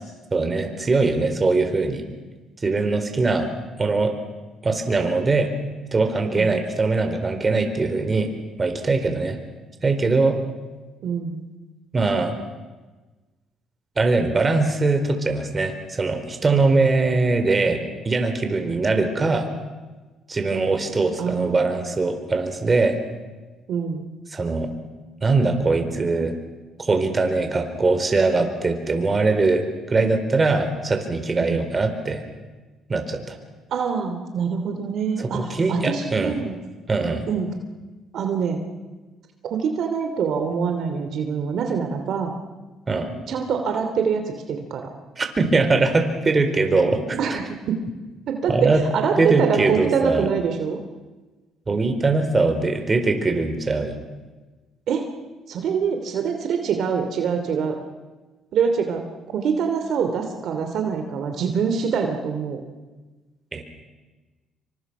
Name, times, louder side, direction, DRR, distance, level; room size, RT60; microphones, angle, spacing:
voice 1, 0.3-2.0 2.6-3.5 3.8-4.1 4.6-5.5 5.9-8.3 8.6-9.4 9.8-10.4 11.9-12.3 14.0-17.8 18.0-19.5 20.3-22.9 24.3-24.7 25.2-26.4 26.8-29.6 29.9-32.2 32.9-33.4 35.2-36.3 36.9-37.3 42.9-43.2 45.2-47.2 48.5-48.8 49.2-50.3 51.7-54.0 63.5-63.6, right 3 dB, 30° right, 6 dB, 4.3 m, -21 dB
voice 2, 11.0-11.4 21.2-22.0 23.7-24.1 31.4-31.6 33.7-36.6 37.3-37.5 38.1-38.6 39.5-42.3 43.3-44.2 44.5-44.9 47.2-47.8 48.3-50.8 54.9-55.1 55.5-57.8 58.5-59.0 59.3-62.6, right 6 dB, 65° right, 5 dB, 2.8 m, -25 dB
27.5 x 24.5 x 6.2 m, 1.2 s
cardioid pair, 90°, 0 cm